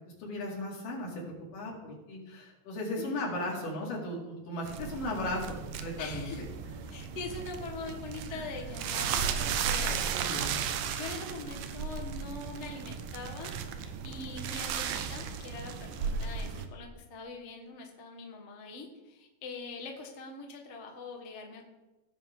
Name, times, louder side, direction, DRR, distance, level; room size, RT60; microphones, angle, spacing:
voice 1, 0.2-1.2 1.5-6.5 8.3-8.5 9.8-10.6 14.9-15.1, left 1 dB, 75° left, -3 dB, 4.0 m, -36 dB
voice 2, 3.0-3.3 6.0-6.4 6.9-10.4 10.8-21.7, left 3 dB, 55° left, 1 dB, 0.7 m, -43 dB
sound 1, 4.6-16.7, right 7 dB, 90° right, 2.3 m, -35 dB
17.0 x 6.4 x 3.7 m, 1.1 s
omnidirectional pair, 3.8 m